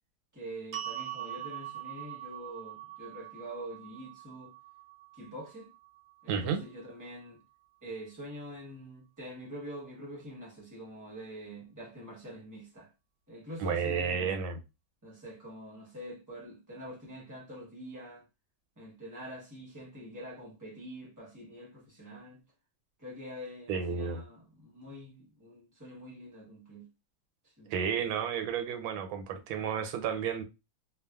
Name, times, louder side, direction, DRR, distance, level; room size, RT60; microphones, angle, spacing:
voice 1, 0.3-4.5 5.1-5.7 6.2-7.4 7.8-12.9 13.3-14.4 15.0-18.2 18.8-22.4 23.0-26.9 27.4-27.7 29.3-29.4, equal, 30° right, 0.3 m, -45 dB
sound 1, 0.7-6.9, right 12 dB, 75° right, 1.0 m, -43 dB
voice 2, 6.3-6.6 13.6-14.6 23.7-24.2 27.7-30.4, right 7 dB, 90° right, 1.4 m, -32 dB
3.0 x 2.3 x 2.3 m
omnidirectional pair, 2.1 m